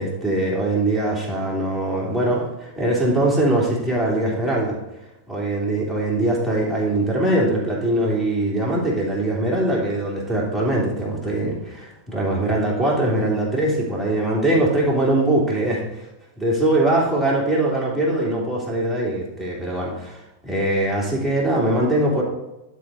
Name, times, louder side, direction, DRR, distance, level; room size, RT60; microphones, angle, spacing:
voice 1, 0.0-4.8 5.3-15.8 16.4-22.2, right 1 dB, 5° left, -4 dB, 2.8 m, -22 dB
11.5 x 4.2 x 4.8 m, 0.96 s
figure-of-eight pair, 90°, 0 cm